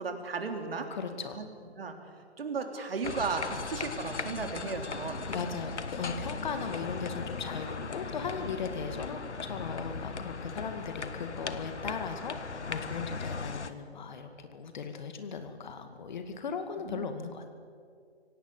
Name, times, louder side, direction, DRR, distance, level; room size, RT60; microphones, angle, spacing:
voice 1, 0.0-0.9 1.3-1.4 1.8-2.0 2.4-5.2 16.8-17.1, right 4 dB, 55° right, 5 dB, 3.3 m, -35 dB
voice 2, 0.9-1.4 5.3-17.5, left 5 dB, 40° left, 7 dB, 2.2 m, -38 dB
sound 1, 3.0-13.7, left 4 dB, 75° left, 1.5 m, -38 dB
25.0 x 17.5 x 8.3 m, 2.2 s
figure-of-eight pair, 150°, 34 cm